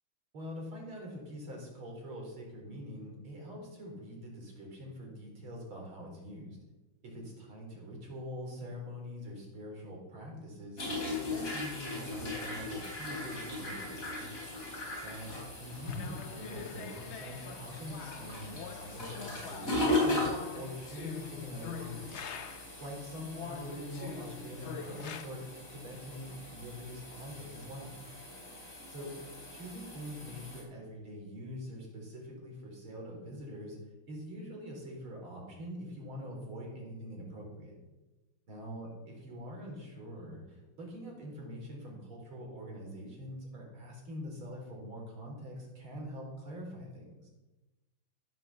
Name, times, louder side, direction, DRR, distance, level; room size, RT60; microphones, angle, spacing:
voice 1, 0.3-6.6 7.0-14.3 15.0-15.3 15.6-20.2 20.5-22.3 22.8-28.0 28.9-29.1 29.5-33.8 34.1-37.7 38.5-47.3, equal, 85° right, -1 dB, 4.6 m, -44 dB
sound 1, 10.8-30.6, left 2 dB, 40° left, 4.4 m, -38 dB
sound 2, 15.8-22.8 23.3-25.3, left 7 dB, 90° left, 0.6 m, -45 dB
14.5 x 7.6 x 6.9 m, 1.1 s
omnidirectional pair, 2.2 m